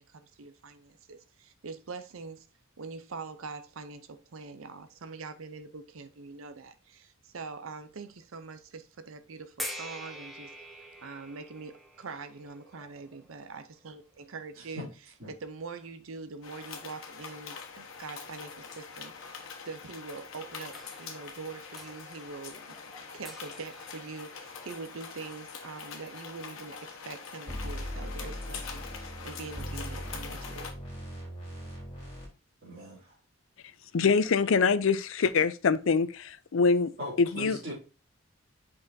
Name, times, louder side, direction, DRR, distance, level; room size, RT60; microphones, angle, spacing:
voice 1, 0.0-2.5 2.8-10.6 11.0-14.9 15.3-22.8 23.1-30.7, right 4 dB, 80° right, 0.6 m, -44 dB
sound 1, 9.6-14.6 15.5-15.6 20.7-25.0, equal, ahead, 1.1 m, -46 dB
voice 2, 14.6-14.9 15.2-15.3 32.6-33.2 37.0-37.7, left 1 dB, 50° right, 3.0 m, -40 dB
sound 2, 16.4-30.7, left 5 dB, 85° left, 1.3 m, -44 dB
sound 3, 27.5-32.3, equal, 25° left, 3.1 m, -39 dB
voice 3, 33.9-36.9 37.2-37.6, left 5 dB, 70° left, 0.5 m, -24 dB
8.1 x 5.4 x 2.7 m
head